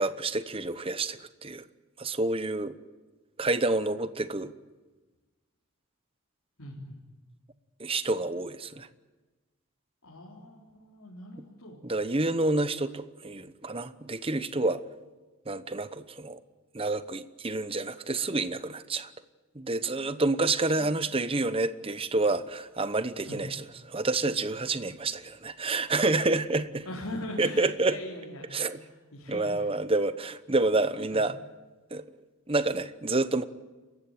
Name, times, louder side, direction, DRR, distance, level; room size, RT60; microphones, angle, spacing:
voice 1, 0.0-1.7 2.0-2.8 3.4-4.5 7.8-8.9 11.8-14.8 15.5-16.4 16.7-19.1 19.5-26.8 27.4-28.0 28.5-28.8 29.3-31.3 31.9-32.0 32.5-33.4, right 2 dB, 25° right, 12 dB, 0.9 m, -28 dB
voice 2, 6.6-7.0 10.0-11.8 23.3-23.5 26.8-29.7 31.1-31.2, left 1 dB, 85° left, -5 dB, 4.5 m, -41 dB
28.0 x 15.5 x 9.1 m, 1.2 s
head